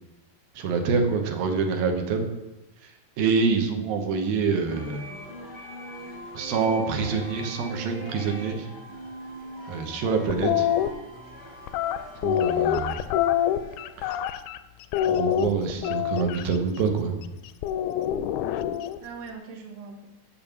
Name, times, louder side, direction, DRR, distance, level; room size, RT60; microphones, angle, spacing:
voice 1, 0.6-2.3 3.2-5.1 6.3-8.7 9.7-10.7 12.2-13.0 14.0-14.2 15.1-17.2, right 5 dB, 85° right, 4 dB, 2.8 m, -26 dB
voice 2, 3.6-4.1 13.1-13.2 19.0-20.1, right 5 dB, 60° right, 2 dB, 2.2 m, -45 dB
sound 1, 4.7-14.1, right 1 dB, 45° left, 0.5 m, -41 dB
sound 2, 10.3-10.9 11.7-14.6 14.9-16.4 17.6-19.0, left 10 dB, 90° left, 2.4 m, -25 dB
7.2 x 7.0 x 7.0 m, 1.0 s
omnidirectional pair, 4.1 m